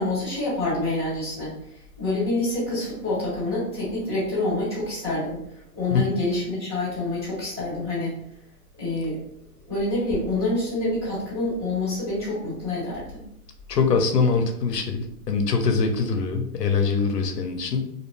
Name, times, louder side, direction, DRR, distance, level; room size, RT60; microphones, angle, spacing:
voice 1, 0.0-8.1 8.8-9.2 9.7-13.1, left 2 dB, 15° right, -11 dB, 0.6 m, -27 dB
voice 2, 13.7-17.9, left 5 dB, 75° left, 5 dB, 0.7 m, -23 dB
2.4 x 2.2 x 3.2 m, 0.73 s
hypercardioid pair, 165°, 48 cm